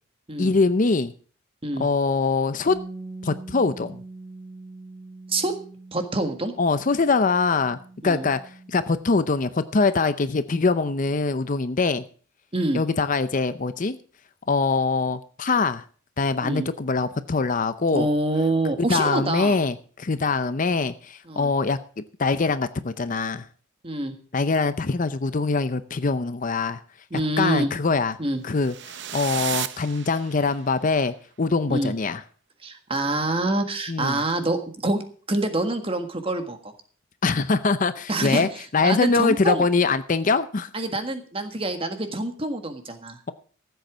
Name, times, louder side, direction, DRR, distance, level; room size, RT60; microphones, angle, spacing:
voice 1, 0.4-1.1 1.8-2.8 3.2-4.0 6.6-7.8 8.0-8.4 8.7-12.0 12.7-14.0 14.5-15.8 16.2-18.1 18.8-21.8 22.2-23.5 24.3-26.8 27.4-28.2 28.4-32.2 33.9-34.2 37.2-40.7, left 4 dB, 40° left, 13 dB, 0.6 m, -23 dB
Bass guitar, 2.7-8.9, right 2 dB, 5° right, 1.4 m, -42 dB
voice 2, 5.9-6.5 8.0-8.3 12.5-12.8 16.4-16.7 17.9-19.6 21.3-21.5 23.8-24.1 27.1-27.7 28.2-28.4 31.7-31.9 32.6-35.0 35.3-36.7 38.1-38.5 38.8-39.6 40.7-43.2, right 2 dB, 25° right, 7 dB, 1.6 m, -26 dB
sound 1, 28.5-30.7, right 11 dB, 60° right, 0.7 m, -34 dB
14.5 x 8.1 x 6.2 m, 0.43 s
head